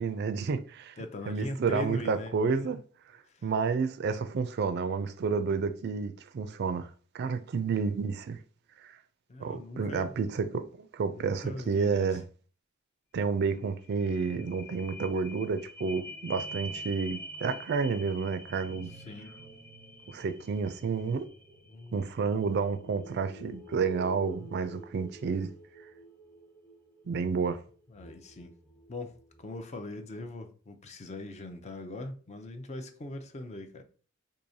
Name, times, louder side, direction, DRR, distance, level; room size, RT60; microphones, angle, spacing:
voice 1, 0.0-0.9 1.3-2.8 3.4-6.9 7.1-8.4 8.8-8.9 9.4-12.2 13.1-18.9 20.1-21.3 21.9-25.5 27.1-27.6, right 5 dB, 55° right, 0.4 m, -30 dB
voice 2, 1.0-2.7 3.3-3.4 9.3-10.2 11.1-12.2 18.9-19.4 21.7-22.1 27.9-28.6 28.9-33.8, left 1 dB, 35° left, 0.5 m, -41 dB
sound 1, 13.6-29.5 30.0-30.1, right 1 dB, 5° left, 1.0 m, -47 dB
4.6 x 2.7 x 2.7 m
head